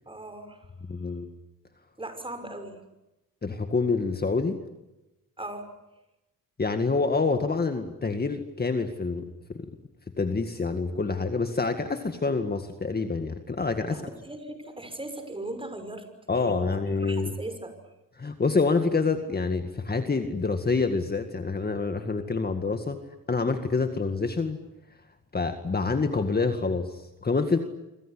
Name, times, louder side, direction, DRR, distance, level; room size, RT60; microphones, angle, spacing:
voice 1, 0.1-0.6 2.0-2.8 5.4-5.7 13.8-17.7, right 1 dB, 15° right, 8 dB, 6.1 m, -39 dB
voice 2, 0.9-1.3 3.4-4.6 6.6-9.7 10.2-14.1 16.3-17.3 18.2-23.0 23.3-24.6 25.3-27.6, left 4 dB, 25° left, 7 dB, 2.0 m, -27 dB
26.5 x 25.0 x 8.4 m, 0.97 s
cardioid pair, 110°, 35 cm